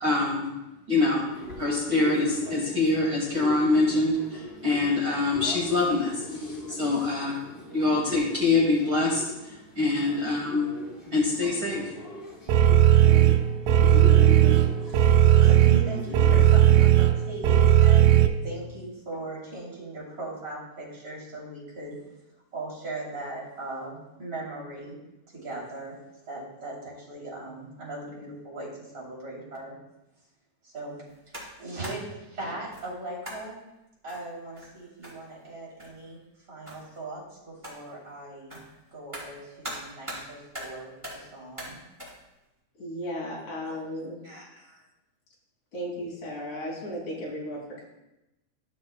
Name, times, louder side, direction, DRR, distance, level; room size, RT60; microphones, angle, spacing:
voice 1, 0.0-0.5 0.9-1.2 1.6-7.3 7.7-9.2 9.7-10.6 11.1-11.8, left 3 dB, 60° right, -3 dB, 1.3 m, -24 dB
sound 1, 1.3-16.8, left 1 dB, 30° left, 2.7 m, -39 dB
sound 2, 12.5-18.3, right 12 dB, 80° right, 2.2 m, -17 dB
voice 2, 14.8-22.0 22.5-25.0 25.3-26.0 26.3-29.7 30.6-31.0 31.6-33.5 34.0-36.2 36.5-38.6 38.9-41.8 44.2-44.8, right 2 dB, 25° right, -5 dB, 3.1 m, -39 dB
sound 3, 31.1-32.1 32.7-32.9 33.2-33.6 34.1-35.5 35.8-36.1 36.7-37.0 37.6-37.9 38.5-40.3 40.5-41.3 41.6-42.2, equal, 10° right, 2.6 m, -41 dB
voice 3, 42.8-44.2 45.7-47.8, equal, 60° left, -4 dB, 3.9 m, -35 dB
14.5 x 6.5 x 2.2 m, 0.95 s
omnidirectional pair, 4.0 m